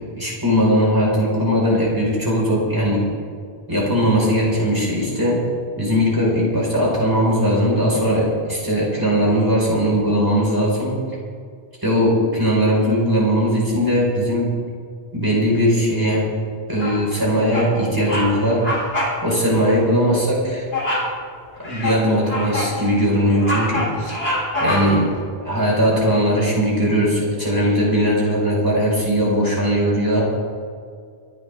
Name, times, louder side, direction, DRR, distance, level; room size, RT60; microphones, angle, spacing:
voice 1, 0.0-3.0 3.7-5.4 5.8-11.0 11.8-14.5 15.1-16.3 16.7-18.6 19.2-20.6 21.6-24.2 24.6-25.1 25.4-30.2, equal, 20° right, -5 dB, 5.3 m, -19 dB
Bird vocalization bird call bird song, 16.8-17.2 17.5-17.8 18.0-18.3 18.6-19.2 19.5-19.7 20.7-21.1 21.6-22.8 23.2-25.1, left 1 dB, 70° left, 4.0 m, -24 dB
27.5 x 11.0 x 3.8 m, 2.1 s
omnidirectional pair, 1.1 m